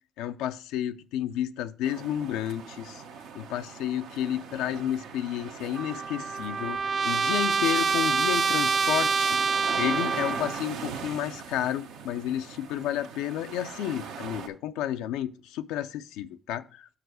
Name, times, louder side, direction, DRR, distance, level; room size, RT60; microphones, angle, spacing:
voice 1, 0.2-3.0 3.3-9.4 9.8-16.9, left 11 dB, 85° left, 0.3 m, -31 dB
sound 1, 1.8-14.5, right 6 dB, 85° right, 0.8 m, -41 dB
Trumpet, 5.8-10.6, right 5 dB, 50° right, 0.3 m, -26 dB
6.0 x 4.7 x 6.1 m
supercardioid pair, 60°, 0 cm